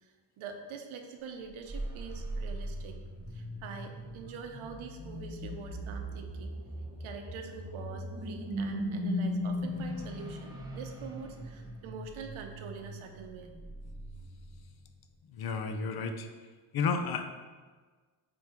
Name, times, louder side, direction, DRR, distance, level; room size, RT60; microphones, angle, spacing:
voice 1, 0.0-3.0 3.3-6.6 7.0-13.5, right 5 dB, 80° right, 5 dB, 0.9 m, -45 dB
sound 1, 1.5-14.9, equal, 10° right, 0.6 m, -38 dB
voice 2, 15.3-16.3 16.7-17.3, left 5 dB, 50° left, 7 dB, 0.6 m, -31 dB
7.7 x 3.7 x 4.5 m, 1.4 s
wide cardioid pair, 175°, 47 cm